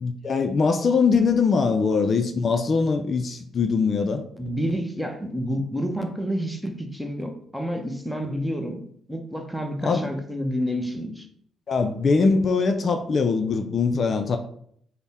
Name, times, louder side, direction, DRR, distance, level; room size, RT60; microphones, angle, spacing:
voice 1, 0.0-4.2 9.8-10.1 11.7-14.4, left 4 dB, 45° left, 6 dB, 0.3 m, -22 dB
voice 2, 4.4-8.8 9.1-11.3, equal, 5° right, 4 dB, 0.6 m, -29 dB
3.5 x 2.1 x 4.0 m, 0.65 s
cardioid pair, 90°, 0 cm